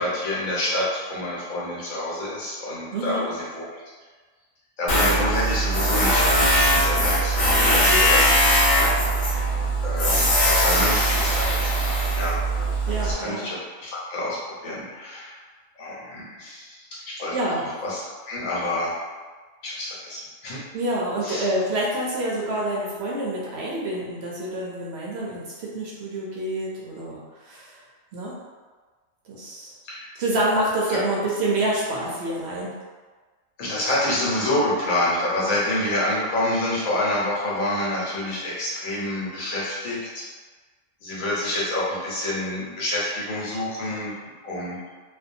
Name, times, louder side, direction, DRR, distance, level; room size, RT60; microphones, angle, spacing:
voice 1, 0.0-3.8 4.8-8.3 9.8-12.4 13.0-15.4 15.8-17.3 17.6-19.0 19.6-20.6 21.2-21.5 29.8-30.1 30.9-31.0 33.6-40.2 41.0-44.1 44.4-44.8, left 1 dB, 80° left, -6 dB, 1.2 m, -28 dB
voice 2, 2.9-3.3 7.6-8.2 12.9-13.4 17.3-17.6 20.7-27.8 28.1-28.4 29.3-29.7 30.2-32.8, right 1 dB, 65° right, -4 dB, 0.7 m, -27 dB
Tools, 4.9-13.1, equal, 60° left, 0.9 m, -20 dB
2.6 x 2.2 x 2.6 m, 1.4 s
omnidirectional pair, 1.4 m